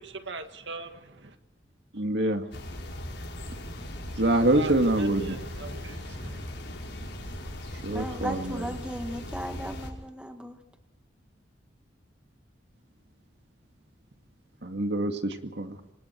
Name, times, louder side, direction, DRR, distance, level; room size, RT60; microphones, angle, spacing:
voice 1, 0.0-1.3 4.5-6.4, right 3 dB, 85° right, 1.9 m, -40 dB
voice 2, 1.9-2.4 4.2-5.4 7.8-8.6 14.6-15.8, right 1 dB, 70° right, 2.2 m, -25 dB
sound 1, 2.5-9.9, left 1 dB, 80° left, 5.4 m, -38 dB
voice 3, 7.9-10.6, equal, 5° right, 1.7 m, -36 dB
28.0 x 25.0 x 4.6 m
head